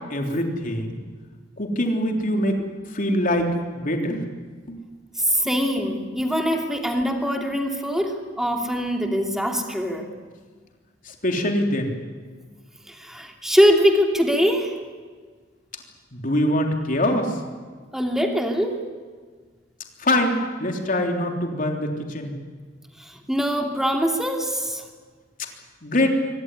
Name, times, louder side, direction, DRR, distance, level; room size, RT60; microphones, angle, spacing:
voice 1, 0.1-0.9 1.6-4.3 4.7-4.8 5.4-5.5 6.2-6.3 11.0-11.9 16.1-17.4 20.0-22.4 25.8-26.1, left 1 dB, 45° left, 3 dB, 3.4 m, -24 dB
voice 2, 5.3-10.1 12.9-14.7 17.9-18.8 23.0-24.8, equal, ahead, 3 dB, 2.8 m, -22 dB
24.0 x 17.5 x 10.0 m, 1.5 s
head